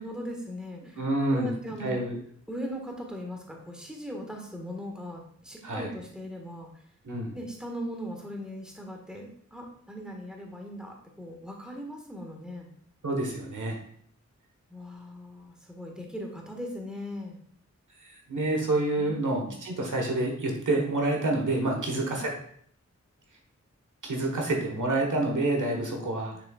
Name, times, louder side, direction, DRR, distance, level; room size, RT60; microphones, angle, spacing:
voice 1, 0.0-1.0 1.3-2.0 2.5-6.8 7.3-12.7 14.7-17.4 19.0-19.6 21.7-22.2 25.6-26.0, equal, 5° right, 0 dB, 1.5 m, -39 dB
voice 2, 1.0-2.2 5.6-5.9 7.0-7.4 13.0-13.8 18.0-22.3 24.0-26.3, right 2 dB, 90° right, 1 dB, 1.4 m, -28 dB
6.7 x 6.4 x 2.4 m, 0.63 s
wide cardioid pair, 70°, 30 cm